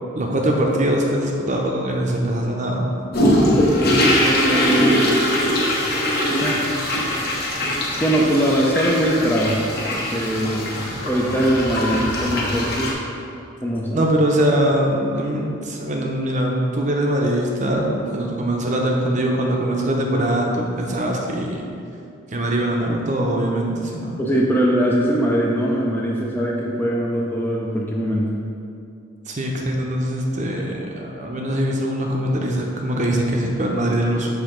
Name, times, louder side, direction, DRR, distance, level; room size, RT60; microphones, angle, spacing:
voice 1, 0.2-2.9 13.9-21.6 22.3-24.2 29.3-34.3, right 1 dB, 35° right, 0 dB, 0.6 m, -22 dB
sound 1, 3.1-12.9, equal, 50° left, 1.0 m, -21 dB
voice 2, 4.1-5.0 6.4-6.8 8.0-9.6 9.9-10.8 11.0-13.0 13.6-14.0 24.2-28.3, right 1 dB, 10° left, -3 dB, 0.4 m, -21 dB
6.5 x 3.4 x 5.0 m, 2.5 s
head